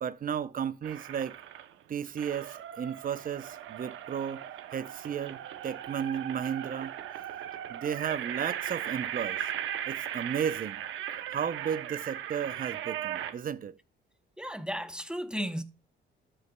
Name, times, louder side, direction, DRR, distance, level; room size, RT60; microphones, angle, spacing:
voice 1, 0.0-1.4 1.9-4.4 4.7-6.9 7.7-9.5 9.9-10.8 11.3-13.8, right 8 dB, 45° right, 0.6 m, -34 dB
sound 1, 0.8-1.7 2.2-13.3, right 11 dB, 80° right, 0.8 m, -38 dB
voice 2, 14.4-15.6, equal, 5° right, 0.8 m, -34 dB
12.5 x 6.6 x 2.3 m
cardioid pair, 90°, 20 cm